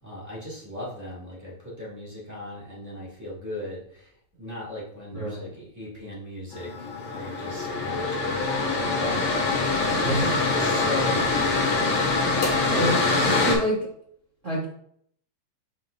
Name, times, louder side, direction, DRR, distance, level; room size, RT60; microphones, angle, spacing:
voice 1, 0.0-9.6 10.0-11.6, left 1 dB, 10° right, -7 dB, 1.1 m, -38 dB
voice 2, 5.1-5.5 9.9-10.4 12.6-13.8 14.4-14.6, equal, 90° right, -6 dB, 0.6 m, -27 dB
Mechanical fan, 6.5-13.6, left 3 dB, 70° left, 3.3 m, -24 dB
7.5 x 5.3 x 2.6 m, 0.67 s
omnidirectional pair, 4.0 m